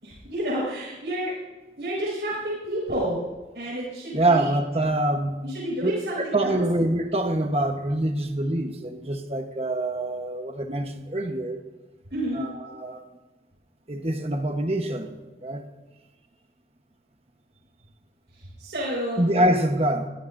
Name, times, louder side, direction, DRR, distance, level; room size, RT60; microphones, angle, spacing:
voice 1, 0.0-1.3 1.8-3.2 3.5-4.5 5.4-6.6 12.1-12.4 18.6-19.2, right 1 dB, 75° right, 5.5 m, -30 dB
voice 2, 4.1-5.5 5.8-5.9 6.2-11.6 12.3-13.0 13.9-15.7 19.2-20.1, right 1 dB, 35° right, 1.2 m, -25 dB
21.5 x 16.0 x 2.7 m
head